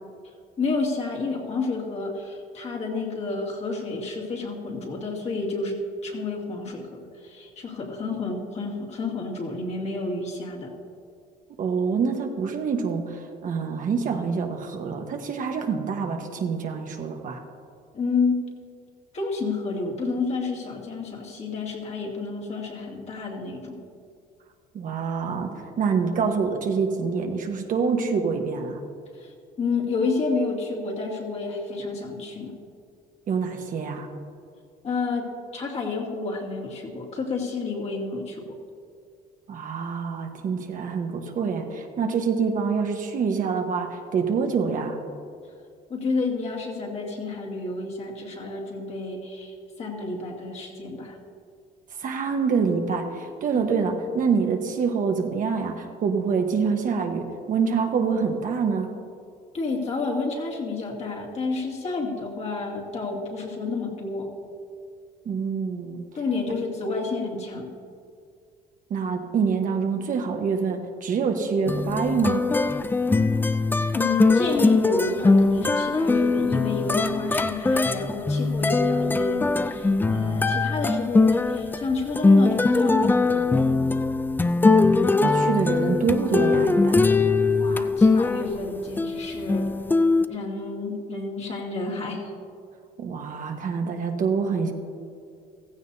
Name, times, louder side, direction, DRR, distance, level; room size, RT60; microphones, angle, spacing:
voice 1, 0.6-10.7 17.9-18.4 19.1-23.8 29.2-29.3 29.6-32.5 34.8-38.6 45.9-51.2 53.5-53.7 59.5-64.3 66.2-67.7 73.9-83.5 87.6-89.7 90.3-92.3, left 3 dB, 40° left, -2 dB, 2.4 m, -30 dB
voice 2, 11.6-17.4 24.7-28.8 33.3-34.1 39.5-45.0 52.0-58.9 65.2-66.0 68.9-72.5 85.2-87.1 93.0-94.7, right 5 dB, 50° right, 4 dB, 1.2 m, -26 dB
sound 1, 71.7-88.7 89.0-90.2, left 3 dB, 10° left, 0.4 m, -21 dB
15.5 x 14.5 x 2.7 m, 2.3 s
cardioid pair, 110°, 17 cm